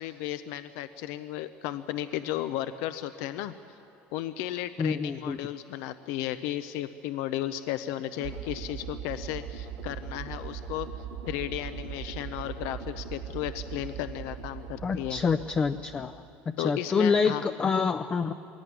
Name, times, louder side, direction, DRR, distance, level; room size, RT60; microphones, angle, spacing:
voice 1, 0.0-3.8 4.1-10.9 11.3-15.2 16.6-17.4, left 13 dB, 75° left, 11 dB, 0.7 m, -34 dB
voice 2, 4.8-5.4 14.8-16.1 16.5-18.3, left 5 dB, 20° left, 9 dB, 0.5 m, -27 dB
sound 1, 8.2-16.4, right 8 dB, 85° right, 2.4 m, -40 dB
22.0 x 17.0 x 9.6 m, 2.7 s
cardioid pair, 150°, 5 cm